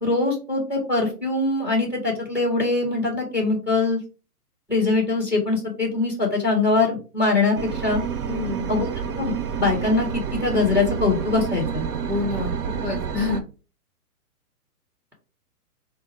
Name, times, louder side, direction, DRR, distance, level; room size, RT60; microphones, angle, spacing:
voice 1, 0.0-4.0 4.7-8.0 8.7-8.9 9.2-9.3 9.6-10.1 10.4-11.8, left 3 dB, 5° right, 0 dB, 1.7 m, -22 dB
sound 1, 7.6-13.4, right 7 dB, 75° right, 0.8 m, -29 dB
voice 2, 8.3-8.7 12.1-13.4, left 4 dB, 20° left, -6 dB, 2.3 m, -28 dB
4.8 x 2.1 x 4.6 m, 0.34 s
hypercardioid pair, 155°, 46 cm